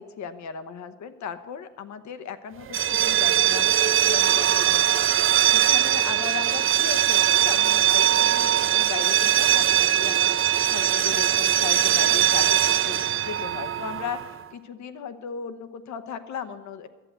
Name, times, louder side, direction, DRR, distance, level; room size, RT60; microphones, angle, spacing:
voice 1, 0.0-13.0 13.2-16.9, left 7 dB, 70° left, 10 dB, 1.0 m, -37 dB
sound 1, 2.7-14.4, right 11 dB, 45° right, 0.6 m, -21 dB
12.0 x 7.8 x 8.0 m, 1.3 s
cardioid pair, 90°, 30 cm